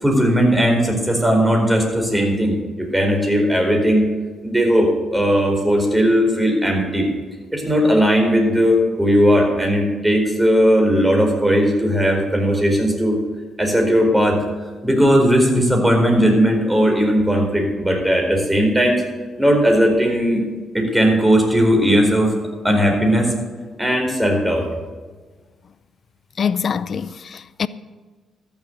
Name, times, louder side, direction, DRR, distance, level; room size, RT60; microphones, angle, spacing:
voice 1, 0.0-4.1 4.4-7.1 7.5-13.2 13.6-14.4 14.8-19.0 19.4-20.4 20.7-22.4 22.6-23.3 23.8-24.7, equal, 10° right, 4.6 m, -17 dB
voice 2, 26.4-27.7, left 7 dB, 55° left, 0.5 m, -24 dB
13.5 x 7.3 x 8.6 m
supercardioid pair, 65°, 0 cm